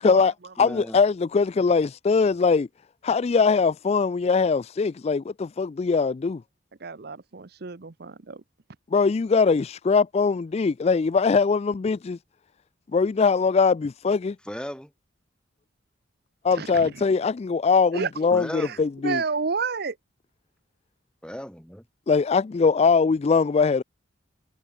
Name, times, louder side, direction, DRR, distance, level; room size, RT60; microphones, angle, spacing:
voice 1, 0.0-2.7 3.0-6.4 8.9-12.2 12.9-14.4 16.4-19.2 22.1-23.8, left 5 dB, 35° left, 0.3 m, -21 dB
voice 2, 0.6-1.0 14.4-14.9 18.3-18.8 21.2-21.8, equal, 5° left, 5.8 m, -36 dB
voice 3, 6.8-8.4 16.5-17.0 17.9-18.1 18.6-18.8 19.0-20.0, right 5 dB, 55° right, 0.8 m, -30 dB
head